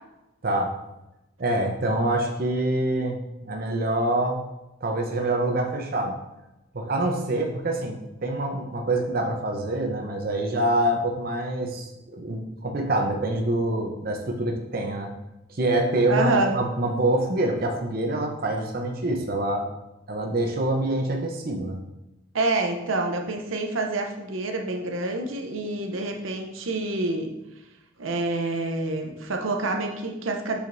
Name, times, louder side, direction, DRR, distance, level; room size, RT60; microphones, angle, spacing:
voice 1, 0.4-0.7 1.4-4.4 4.8-6.2 6.7-15.1 15.5-19.7 20.1-21.8, right 1 dB, 50° right, 2 dB, 0.8 m, -25 dB
voice 2, 16.1-16.5 22.3-27.3 28.0-30.6, right 2 dB, 90° right, 3 dB, 0.8 m, -27 dB
7.5 x 5.0 x 2.6 m, 0.95 s
head